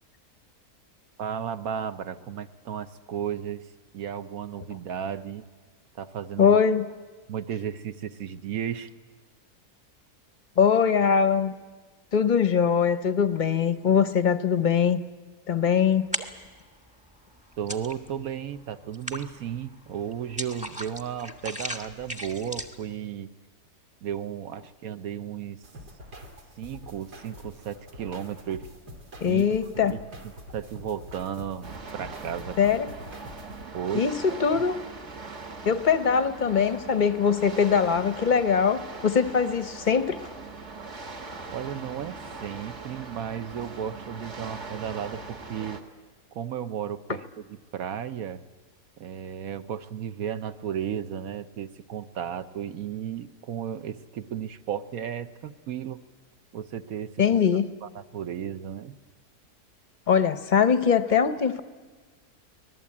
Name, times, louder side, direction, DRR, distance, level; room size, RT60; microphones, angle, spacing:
voice 1, 1.2-3.7 3.9-5.4 6.0-6.6 7.3-8.9 17.6-23.3 24.0-25.6 26.6-28.7 29.3-29.5 29.8-32.6 33.7-34.7 41.5-45.8 46.3-48.4 49.0-56.0 56.5-57.1 57.8-58.9, right 9 dB, 65° right, 11 dB, 1.3 m, -34 dB
voice 2, 6.4-6.9 10.6-11.5 12.1-15.0 15.5-16.1 29.2-29.9 32.6-32.9 33.9-34.8 35.6-40.2 57.2-57.7 60.1-61.6, left 7 dB, 40° left, 11 dB, 0.7 m, -22 dB
sound 1, 15.9-16.6 17.0-18.3 18.6-22.9, equal, 5° right, 1.1 m, -36 dB
sound 2, 25.6-33.6, equal, 85° right, 3.3 m, -45 dB
sound 3, 31.6-45.8, right 3 dB, 45° right, 1.9 m, -41 dB
24.5 x 19.0 x 8.6 m, 1.4 s
omnidirectional pair, 1.7 m